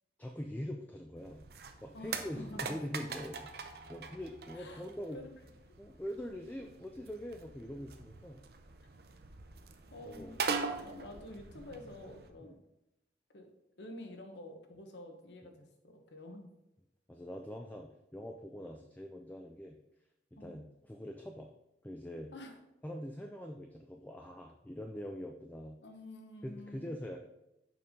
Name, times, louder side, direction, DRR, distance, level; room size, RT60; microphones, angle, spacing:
voice 1, 0.2-1.4 1.8-3.6 3.9-5.2 5.8-8.4 10.1-10.3 12.4-12.6 17.1-19.8 20.3-21.5 21.8-22.3 22.8-25.8 26.4-27.2, equal, 10° left, 3 dB, 0.4 m, -43 dB
sound 1, 1.2-12.3, right 5 dB, 60° right, 0.6 m, -43 dB
voice 2, 1.9-2.8 4.5-4.8 5.1-5.3 9.9-12.6 13.3-13.5 13.8-16.5 20.4-20.6 22.3-22.6 25.8-26.9, left 1 dB, 75° left, 5 dB, 1.1 m, -49 dB
6.8 x 5.2 x 3.7 m, 0.89 s
head